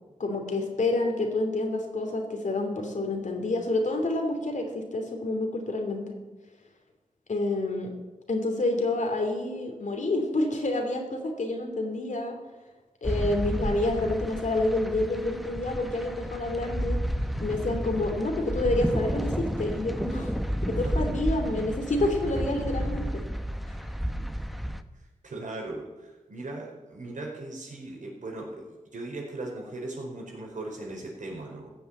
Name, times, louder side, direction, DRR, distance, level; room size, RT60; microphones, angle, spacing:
voice 1, 0.2-6.2 7.3-7.9 8.3-12.4 13.0-17.0 17.4-20.3 20.6-23.2 23.7-23.8, left 2 dB, 65° left, 4 dB, 2.9 m, -28 dB
sound 1, 13.0-24.8, equal, ahead, 0.8 m, -31 dB
voice 2, 20.7-21.1 24.3-24.7 24.9-31.7, right 2 dB, 70° right, -1 dB, 4.6 m, -39 dB
15.0 x 7.2 x 9.0 m, 1.2 s
cardioid pair, 60°, 14 cm